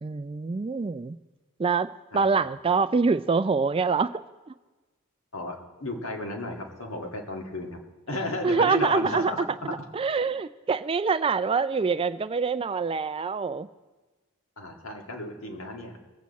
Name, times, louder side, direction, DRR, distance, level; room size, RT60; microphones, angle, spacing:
voice 1, 0.0-1.2 1.6-4.1 4.5-4.6 8.4-13.7, right 4 dB, 25° right, 13 dB, 0.3 m, -25 dB
voice 2, 5.3-7.8 8.1-9.9 14.6-16.0, left 1 dB, 60° left, 2 dB, 1.9 m, -34 dB
21.5 x 8.4 x 4.1 m, 1.2 s
head